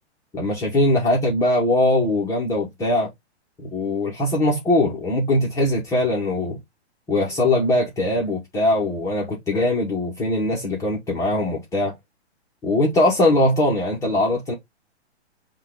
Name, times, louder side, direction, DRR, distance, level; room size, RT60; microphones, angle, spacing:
voice 1, 0.3-3.1 3.7-6.6 7.1-11.9 12.6-14.5, left 1 dB, 10° left, 0.8 m, -21 dB
5.7 x 2.3 x 3.5 m
hypercardioid pair, 150°, 34 cm